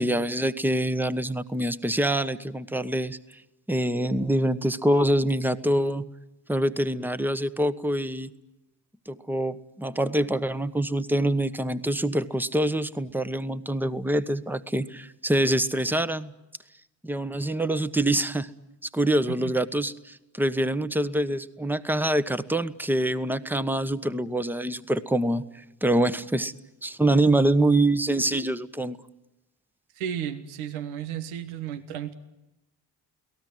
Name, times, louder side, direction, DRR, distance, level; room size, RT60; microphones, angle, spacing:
voice 1, 0.0-3.2 3.7-6.1 6.5-8.3 9.1-16.3 17.0-18.5 18.9-26.5 26.8-29.0, right 1 dB, 5° right, 12 dB, 1.2 m, -25 dB
voice 2, 29.9-32.1, right 9 dB, 80° right, 9 dB, 1.5 m, -33 dB
29.5 x 18.0 x 9.4 m, 0.94 s
hypercardioid pair, 45°, 49 cm